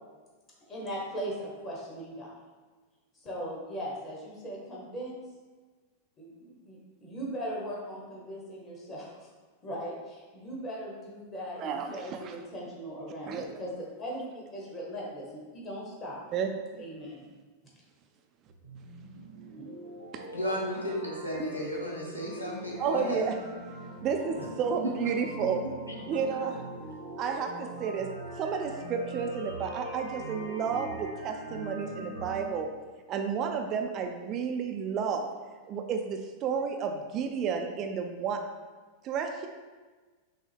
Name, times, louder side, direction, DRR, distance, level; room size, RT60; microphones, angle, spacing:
voice 1, 0.7-2.3 3.2-5.2 6.2-9.3 9.6-13.7 14.0-16.2 16.8-17.3 19.6-19.7, equal, 25° left, -4 dB, 1.2 m, -39 dB
voice 2, 11.6-12.4 13.3-13.5 16.3-16.8 20.1-20.3 21.4-21.5 22.8-23.3 24.0-25.7 26.1-26.6 27.2-32.7 33.1-35.3 35.7-38.4 39.0-39.5, right 6 dB, 35° right, 4 dB, 0.4 m, -32 dB
sound 1, 18.5-32.5, right 1 dB, 85° right, 0.7 m, -42 dB
voice 3, 20.3-23.2 24.4-24.5 24.8-24.9 25.9-26.0, equal, 85° left, -2 dB, 0.8 m, -33 dB
5.9 x 2.1 x 3.5 m, 1.4 s
figure-of-eight pair, 90°, 0 cm